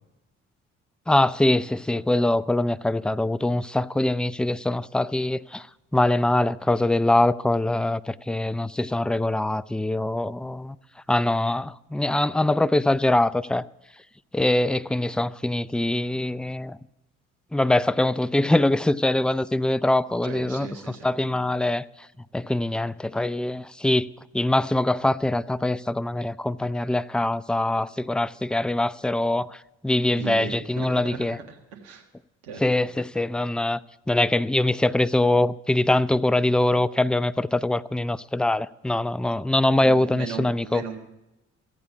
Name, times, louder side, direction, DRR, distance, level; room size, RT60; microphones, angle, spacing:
voice 1, 1.1-5.7 5.9-10.8 11.1-13.6 14.3-16.8 17.5-20.7 21.0-21.8 22.3-24.1 24.3-29.6 29.8-31.4 32.6-33.8 34.1-40.8, left 1 dB, 5° left, 0.4 m, -23 dB
voice 2, 20.2-21.1 30.1-32.0 32.4-32.6 39.8-41.0, right 6 dB, 80° right, 1.7 m, -37 dB
15.0 x 8.5 x 8.2 m
hypercardioid pair, 45°, 35 cm